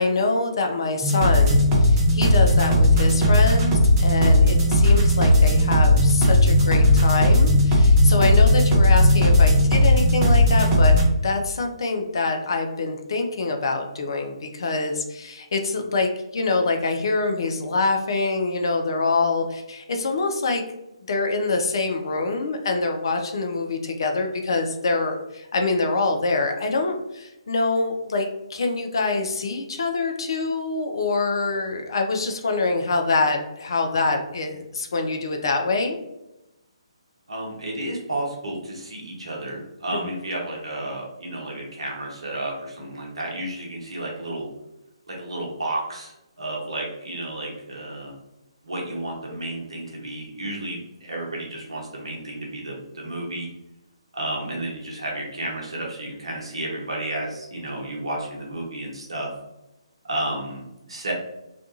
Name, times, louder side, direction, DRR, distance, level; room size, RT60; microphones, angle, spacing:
voice 1, 0.0-20.6 21.1-36.0, left 3 dB, 50° left, 4 dB, 0.4 m, -25 dB
sound 1, 1.0-11.0, left 1 dB, 20° right, 0.6 m, -16 dB
voice 2, 37.3-44.5 45.1-48.2 48.6-53.5 54.1-59.3 60.1-61.1, right 1 dB, 65° right, -2 dB, 0.8 m, -32 dB
2.5 x 2.2 x 2.7 m, 0.93 s
figure-of-eight pair, 140°, 3 cm